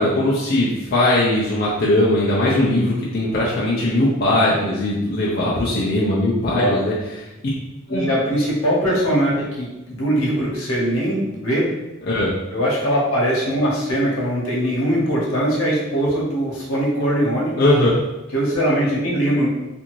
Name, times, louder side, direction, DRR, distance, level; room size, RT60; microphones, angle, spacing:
voice 1, 0.0-6.9 7.9-8.1 12.1-12.3 17.6-17.9, left 1 dB, 45° left, -6 dB, 0.4 m, -19 dB
voice 2, 6.5-6.8 7.9-11.7 12.5-17.6 18.3-19.5, equal, 80° left, -4 dB, 0.9 m, -21 dB
2.5 x 2.5 x 3.0 m, 1.0 s
head